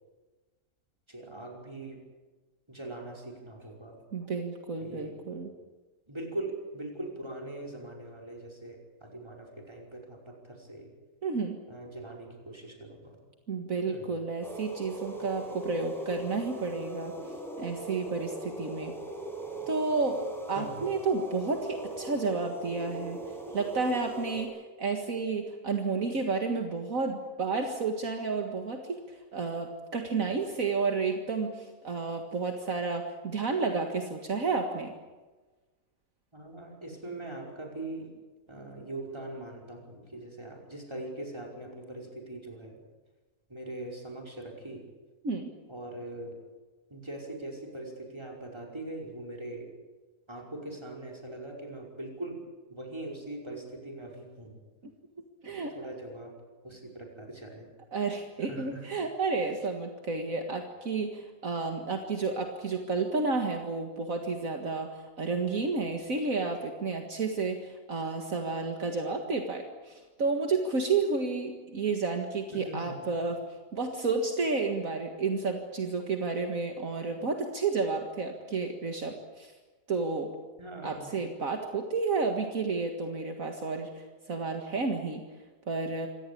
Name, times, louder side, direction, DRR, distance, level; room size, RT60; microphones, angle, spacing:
voice 1, 1.1-2.0 2.7-4.0 4.8-5.2 6.1-10.9 11.7-13.2 13.9-14.0 20.5-20.9 36.3-38.1 38.5-42.8 43.5-44.8 45.7-46.3 46.9-49.6 50.3-52.4 52.7-54.5 55.5-56.3 56.6-57.7 58.4-58.8 72.5-73.0 80.6-81.1, right 2 dB, 15° right, 0 dB, 5.3 m, -41 dB
voice 2, 4.1-5.5 11.2-11.6 13.5-17.1 17.6-18.9 19.7-20.2 20.5-23.2 23.5-34.9 45.2-45.5 54.8-54.9 55.4-55.7 57.9-73.4 73.7-79.5 79.9-80.3 80.8-85.2 85.7-86.1, right 4 dB, 60° right, 3 dB, 2.2 m, -31 dB
sound 1, 14.4-24.4, right 1 dB, ahead, 5.7 m, -39 dB
26.5 x 17.5 x 8.6 m, 1.3 s
omnidirectional pair, 1.6 m